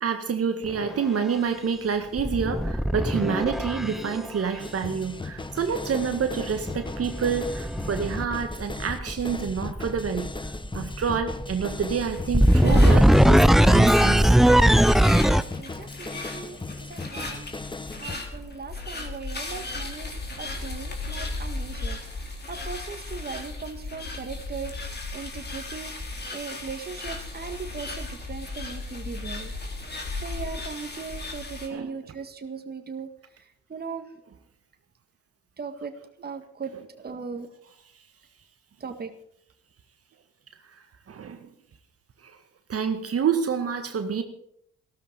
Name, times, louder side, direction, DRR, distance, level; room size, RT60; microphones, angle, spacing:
voice 1, 0.0-10.3 10.7-14.4 31.7-31.9 41.1-41.5 42.2-42.4 42.7-44.2, right 6 dB, 45° right, 7 dB, 1.8 m, -28 dB
sound 1, 0.7-0.9 2.2-4.3 6.1-15.4, equal, ahead, 0.7 m, -20 dB
sound 2, 4.6-18.2, left 3 dB, 15° left, 1.0 m, -37 dB
sound 3, 12.0-31.7, left 2 dB, 30° left, 3.8 m, -36 dB
voice 2, 15.3-17.5 18.0-20.1 20.4-22.0 22.5-26.0 26.3-29.5 29.9-33.1 33.7-34.1 35.6-35.9 36.2-37.5 38.8-39.1, right 5 dB, 30° right, 6 dB, 1.8 m, -38 dB
15.0 x 13.0 x 5.3 m, 0.69 s
hypercardioid pair, 55°, 32 cm